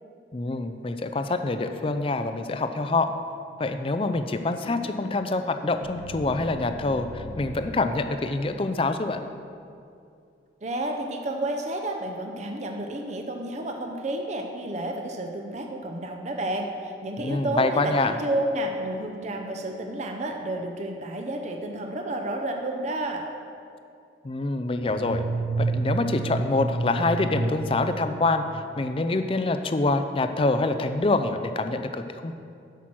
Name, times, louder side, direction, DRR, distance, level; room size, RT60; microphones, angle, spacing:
voice 1, 0.3-3.1 3.6-9.2 17.2-18.2 24.2-25.3 25.6-32.3, left 2 dB, 30° left, 8 dB, 0.4 m, -26 dB
sound 1, 4.6-8.7, left 1 dB, 85° left, 1.2 m, -42 dB
voice 2, 10.6-23.2, right 1 dB, 40° right, 3 dB, 0.6 m, -30 dB
sound 2, 24.9-29.0, right 3 dB, 80° right, 0.4 m, -29 dB
8.1 x 6.2 x 6.0 m, 2.5 s
head